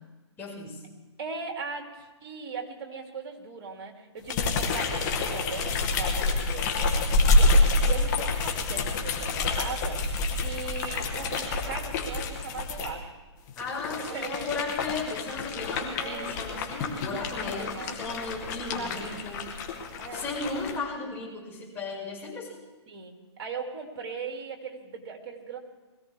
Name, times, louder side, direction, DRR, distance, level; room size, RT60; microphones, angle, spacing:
voice 1, 0.4-0.8 13.6-19.4 20.1-22.6, left 3 dB, 15° left, -5 dB, 5.6 m, -35 dB
voice 2, 1.2-13.1 14.0-14.8 16.0-16.4 17.2-17.9 18.7-19.3 20.0-20.3 22.9-25.6, right 5 dB, 45° right, 2 dB, 2.9 m, -39 dB
sound 1, 4.3-12.9 13.5-20.8, left 2 dB, 40° left, 2.2 m, -27 dB
21.5 x 16.0 x 3.5 m, 1.2 s
hypercardioid pair, 140°, 15 cm